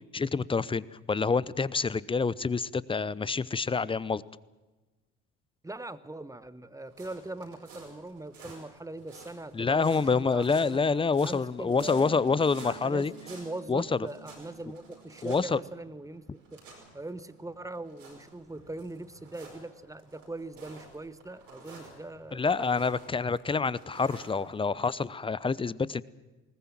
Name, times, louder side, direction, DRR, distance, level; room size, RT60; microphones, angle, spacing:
voice 1, 0.1-4.2 9.5-13.1 13.7-14.0 15.2-15.6 22.3-26.0, left 4 dB, 15° left, 20 dB, 0.7 m, -27 dB
voice 2, 5.6-10.8 11.2-12.3 12.6-16.6 16.9-22.9, right 2 dB, 10° right, 14 dB, 1.1 m, -41 dB
sound 1, 6.9-25.0, right 3 dB, 85° right, 5.2 m, -52 dB
Bass guitar, 11.8-16.1 16.4-18.0, right 15 dB, 70° right, 2.0 m, -53 dB
20.5 x 19.0 x 7.5 m, 1.2 s
hypercardioid pair, 55°, 37 cm